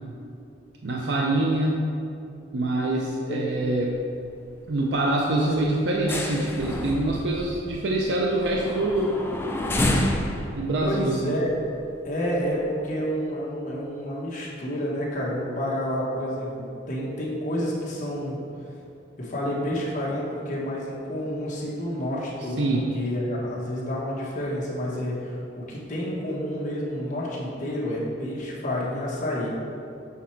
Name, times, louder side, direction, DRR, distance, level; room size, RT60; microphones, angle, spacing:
voice 1, 0.8-1.9 2.5-3.9 4.7-9.1 10.6-11.3 22.6-22.9, right 2 dB, 65° right, -1 dB, 0.5 m, -25 dB
sound 1, 3.5-4.0 4.3-4.5 4.9-5.1 5.4-12.1 12.6-12.7, left 1 dB, 10° left, 0.4 m, -29 dB
voice 2, 5.3-5.7 10.8-11.5 12.0-18.4 19.2-29.5, equal, 40° left, -5 dB, 1.3 m, -29 dB
7.2 x 4.2 x 4.4 m, 2.7 s
head